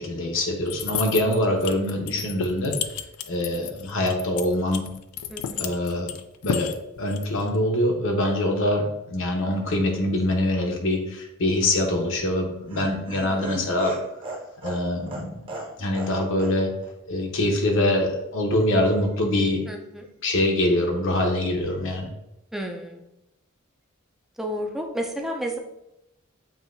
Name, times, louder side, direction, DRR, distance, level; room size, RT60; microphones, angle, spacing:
voice 1, 0.0-2.9 3.3-4.8 5.6-6.1 6.4-6.7 7.0-13.9 14.6-15.4 15.8-16.7 17.1-19.6 20.2-22.1, left 1 dB, 65° left, 2 dB, 0.9 m, -24 dB
sound 1, 0.7-7.6, left 9 dB, 90° left, 0.3 m, -32 dB
voice 2, 1.7-2.1 5.3-5.7 9.8-10.1 13.3-13.7 19.7-20.0 22.5-23.0 24.4-25.6, equal, ahead, 2 dB, 0.5 m, -33 dB
Laughter, 12.1-16.1 16.4-16.5 16.8-16.9, right 1 dB, 25° right, 0.9 m, -36 dB
7.2 x 2.7 x 2.6 m, 0.87 s
head